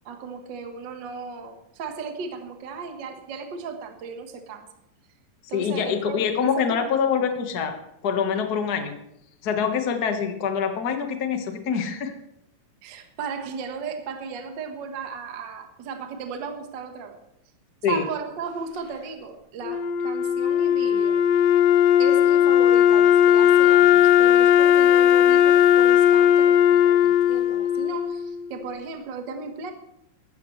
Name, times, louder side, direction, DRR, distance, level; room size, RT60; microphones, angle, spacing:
voice 1, 0.0-4.7 5.5-7.3 12.8-17.2 17.9-21.2 22.0-29.7, right 5 dB, 50° right, 5 dB, 1.4 m, -35 dB
voice 2, 5.5-7.7 8.0-9.0 9.4-12.1 17.8-18.0, left 7 dB, 55° left, 5 dB, 1.0 m, -25 dB
Wind instrument woodwind instrument, 19.6-28.7, left 10 dB, 85° left, 2.4 m, -17 dB
16.5 x 14.0 x 3.2 m, 0.79 s
omnidirectional pair, 3.9 m